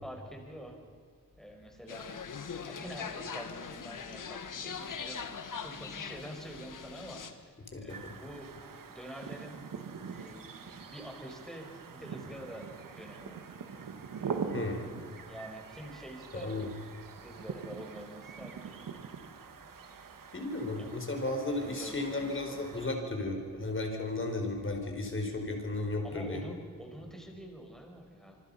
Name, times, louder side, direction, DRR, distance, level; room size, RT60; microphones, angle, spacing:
voice 1, 0.0-0.8 1.4-2.1 2.7-5.3 5.6-8.5 8.9-9.6 10.0-13.5 15.3-16.7 17.2-18.8 20.8-20.9 21.6-22.9 26.0-28.4, equal, ahead, 2 dB, 5.2 m, -47 dB
sound 1, 1.9-7.3, left 6 dB, 70° left, 1.8 m, -41 dB
sound 2, 7.9-23.0, right 5 dB, 75° right, 1.8 m, -44 dB
voice 2, 16.3-16.7 20.3-26.4, left 2 dB, 35° left, 3 dB, 4.8 m, -34 dB
26.5 x 24.5 x 5.8 m, 2.2 s
wide cardioid pair, 95°, 33 cm